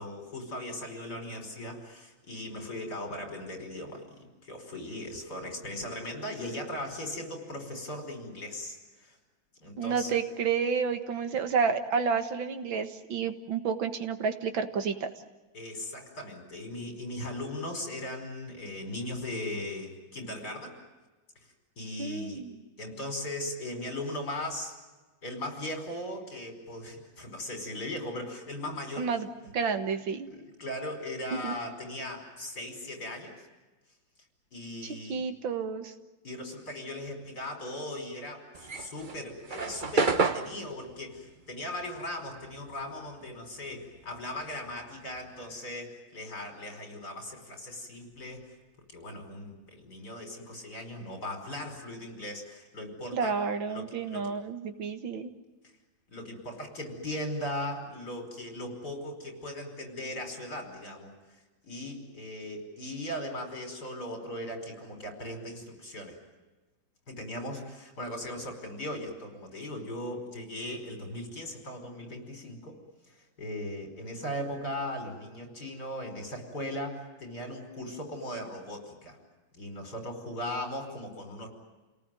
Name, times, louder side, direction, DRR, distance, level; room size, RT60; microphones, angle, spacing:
voice 1, 0.0-9.2 9.6-10.2 15.5-20.8 21.8-22.5 22.8-24.7 25.2-29.1 30.3-33.4 34.5-35.2 36.2-48.5 48.9-53.4 53.7-54.3 56.1-66.2 67.1-72.8 73.1-79.2 79.5-81.5, left 1 dB, 55° left, 4 dB, 5.8 m, -38 dB
voice 2, 9.8-15.1 22.0-22.6 29.0-29.3 29.5-30.3 31.4-31.5 34.8-35.9 53.1-55.3, right 6 dB, 90° right, 8 dB, 2.3 m, -30 dB
sound 1, 38.5-43.3 43.5-45.5, right 3 dB, 35° right, 0.9 m, -31 dB
29.5 x 18.5 x 9.2 m, 1.2 s
omnidirectional pair, 2.0 m